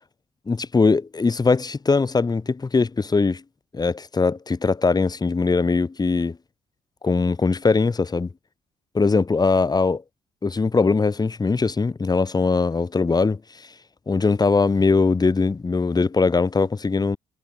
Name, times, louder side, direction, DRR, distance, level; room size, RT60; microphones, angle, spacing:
voice 1, 0.5-3.4 3.7-6.4 7.0-8.3 8.9-10.0 10.4-13.7 14.1-17.2, left 4 dB, 30° left, 3.2 m, -21 dB
hypercardioid pair, 45°, 14 cm